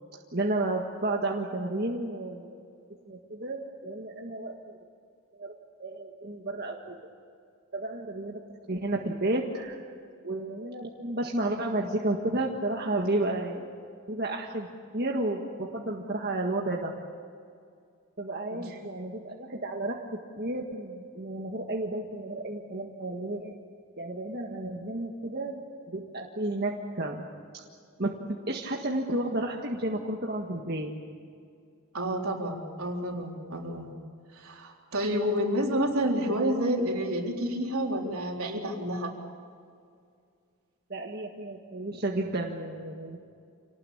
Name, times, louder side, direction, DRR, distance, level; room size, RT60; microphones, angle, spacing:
voice 1, 0.3-2.6 3.1-4.8 5.4-7.0 7.7-8.4 8.7-9.8 10.2-13.7 14.1-14.7 14.9-16.9 18.2-23.5 24.0-27.3 27.5-27.6 28.0-28.1 28.5-30.9 40.9-43.2, right 2 dB, 45° right, 0 dB, 1.7 m, -32 dB
voice 2, 18.5-18.8 31.9-33.9 34.3-39.1, equal, 75° right, 1 dB, 3.8 m, -29 dB
27.0 x 19.0 x 8.7 m, 2.3 s
head